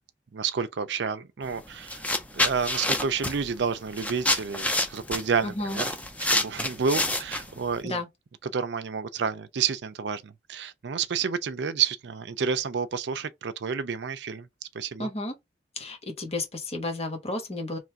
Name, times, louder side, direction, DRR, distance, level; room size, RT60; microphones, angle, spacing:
voice 1, 0.3-2.1 2.3-5.9 6.3-8.0 8.4-14.5 14.7-15.1, right 6 dB, 70° right, 0.5 m, -30 dB
sound 1, 1.4-1.6 1.9-7.8, left 1 dB, 10° left, 0.5 m, -28 dB
voice 2, 5.4-5.8 7.8-8.1 15.0-15.3 15.8-17.8, left 2 dB, 35° left, 1.1 m, -32 dB
3.1 x 2.6 x 4.5 m
head